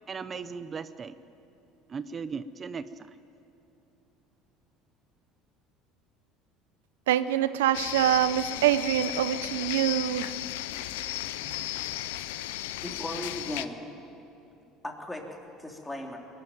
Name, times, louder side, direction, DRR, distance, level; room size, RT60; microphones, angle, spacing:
voice 1, 0.1-1.1 1.9-3.2, right 5 dB, 30° right, 0.7 m, -37 dB
voice 2, 7.1-10.3, right 12 dB, 90° right, 0.7 m, -25 dB
sound 1, 7.7-13.7, left 15 dB, 85° left, 0.7 m, -35 dB
voice 3, 12.8-13.8 14.8-15.2 15.6-16.2, left 1 dB, 10° left, 3.2 m, -37 dB
21.5 x 13.0 x 9.4 m
supercardioid pair, 90°, 0 cm